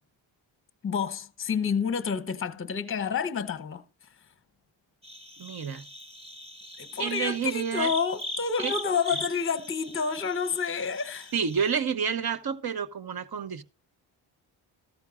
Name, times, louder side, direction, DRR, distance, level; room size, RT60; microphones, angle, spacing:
voice 1, 0.8-3.8 6.8-11.3, left 6 dB, 25° left, 0.8 m, -29 dB
sound 1, 5.0-11.7, left 1 dB, 10° right, 1.7 m, -40 dB
voice 2, 5.4-5.8 7.0-7.9 8.6-8.7 11.3-13.6, right 7 dB, 50° right, 1.0 m, -29 dB
14.0 x 13.5 x 2.4 m
supercardioid pair, 55°, 49 cm